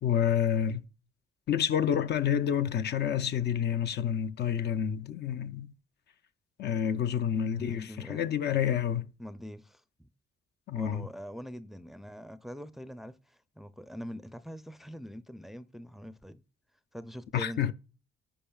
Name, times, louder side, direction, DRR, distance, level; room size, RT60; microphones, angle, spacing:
voice 1, 0.0-0.8 1.5-5.7 6.6-9.1 10.7-11.1 17.3-17.7, left 9 dB, 60° left, 0.5 m, -28 dB
voice 2, 7.3-8.3 9.2-10.1 10.8-16.4 16.9-17.7, equal, ahead, 0.4 m, -43 dB
10.0 x 5.0 x 2.3 m
cardioid pair, 90°, 20 cm